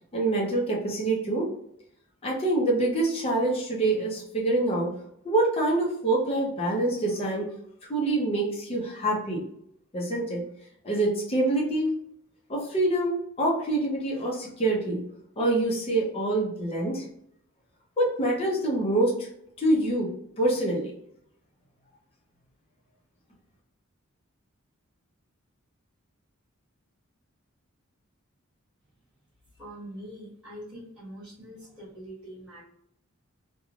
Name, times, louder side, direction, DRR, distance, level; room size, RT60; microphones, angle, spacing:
voice 1, 0.1-1.5 2.2-4.9 5.2-7.5 7.9-9.4 9.9-10.4 10.8-11.9 12.5-15.0 15.4-17.0 18.0-19.3 19.6-20.1 20.4-20.9, right 2 dB, 30° left, -3 dB, 0.6 m, -25 dB
voice 2, 29.5-32.6, equal, 5° right, -11 dB, 1.5 m, -43 dB
3.1 x 2.2 x 2.4 m, 0.72 s
head